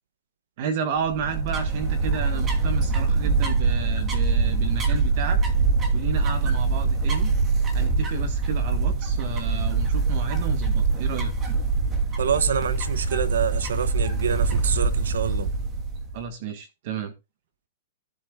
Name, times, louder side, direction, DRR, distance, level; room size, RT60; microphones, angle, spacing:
voice 1, 0.6-5.4 5.9-7.3 7.7-11.3 16.1-17.1, right 6 dB, 50° right, 1.5 m, -32 dB
sound 1, 1.0-16.2, right 4 dB, 20° right, 2.6 m, -24 dB
voice 2, 12.2-15.5, right 7 dB, 90° right, 1.2 m, -26 dB
15.5 x 8.3 x 2.4 m
hypercardioid pair, 150°, 0 cm